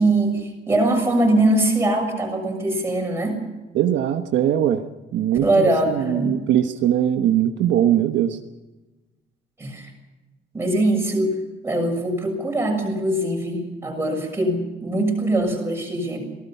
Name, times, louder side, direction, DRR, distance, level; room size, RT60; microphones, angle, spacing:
voice 1, 0.0-3.4 5.4-6.4 9.6-9.9 10.5-11.4 11.6-16.2, right 1 dB, 10° right, 1 dB, 7.0 m, -22 dB
voice 2, 3.7-4.8 5.1-8.4, right 10 dB, 65° right, 6 dB, 1.2 m, -21 dB
27.0 x 18.5 x 5.7 m, 1.1 s
cardioid pair, 165°, 20 cm